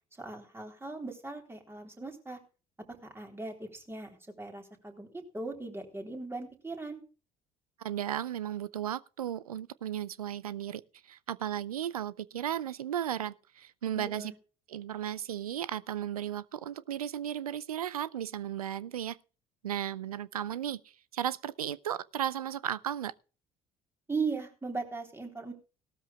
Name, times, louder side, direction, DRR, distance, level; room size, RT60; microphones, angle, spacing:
voice 1, 0.2-2.4 2.9-7.0 14.0-14.3 24.1-25.5, right 4 dB, 15° right, 3.6 m, -38 dB
voice 2, 7.8-10.8 11.1-14.3 14.7-19.2 19.6-20.8 21.1-23.1, right 10 dB, 80° right, 0.5 m, -35 dB
18.0 x 13.0 x 2.4 m
figure-of-eight pair, 55°, 19 cm